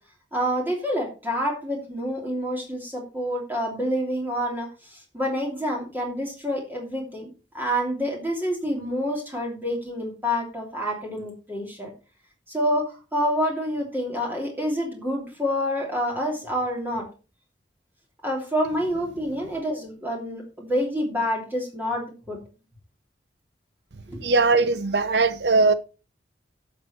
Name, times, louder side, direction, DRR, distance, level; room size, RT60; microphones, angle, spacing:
voice 1, 0.3-11.9 12.5-17.1 18.2-22.4 24.1-24.2, equal, 10° right, 2.8 m, -28 dB
voice 2, 24.2-25.7, right 3 dB, 65° right, 0.8 m, -20 dB
11.0 x 7.0 x 4.3 m
head